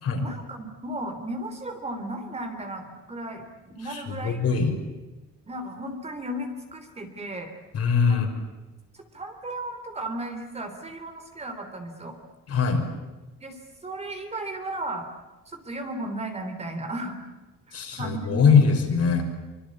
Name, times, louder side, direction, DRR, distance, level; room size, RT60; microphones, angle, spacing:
voice 1, 0.2-3.5 3.8-4.6 5.5-7.5 8.1-8.3 8.9-12.2 13.4-15.1 15.5-17.2 17.7-18.7, right 1 dB, 20° right, 6 dB, 3.4 m, -35 dB
voice 2, 3.8-4.8 7.7-8.3 12.5-12.9 17.7-19.2, left 5 dB, 50° left, 3 dB, 5.7 m, -22 dB
25.5 x 25.0 x 8.5 m, 1.1 s
cardioid pair, 160°, 32 cm